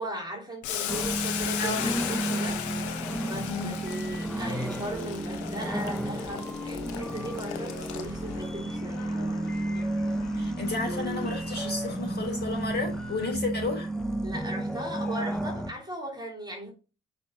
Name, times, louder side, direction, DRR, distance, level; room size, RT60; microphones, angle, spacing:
voice 1, 0.0-2.9 3.2-9.5 14.2-16.7, right 1 dB, 15° right, 3.1 m, -38 dB
Boiling, 0.6-8.4, left 9 dB, 75° left, 1.2 m, -36 dB
sound 1, 0.9-15.7, right 1 dB, ahead, 1.0 m, -32 dB
voice 2, 1.6-1.9 3.5-3.7 10.3-13.9, left 3 dB, 35° left, 5.2 m, -32 dB
sound 2, 7.5-13.1, left 3 dB, 60° left, 2.2 m, -45 dB
6.3 x 5.6 x 5.1 m
hypercardioid pair, 55°, 30 cm